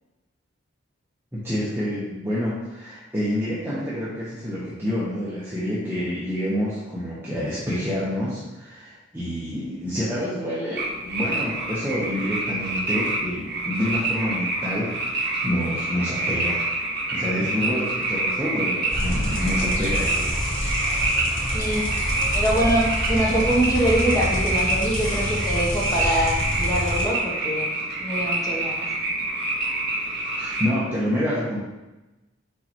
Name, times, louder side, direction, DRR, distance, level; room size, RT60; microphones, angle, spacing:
voice 1, 1.3-16.6 17.1-20.3 30.3-31.6, equal, 10° right, -10 dB, 1.2 m, -28 dB
sound 1, 10.8-30.6, right 2 dB, 55° right, 1.7 m, -27 dB
sound 2, 18.9-27.0, equal, 90° left, 1.4 m, -28 dB
voice 2, 21.5-21.9 22.3-27.7 28.0-28.9, right 1 dB, 20° left, -4 dB, 1.1 m, -24 dB
6.5 x 4.8 x 3.2 m, 1.0 s
head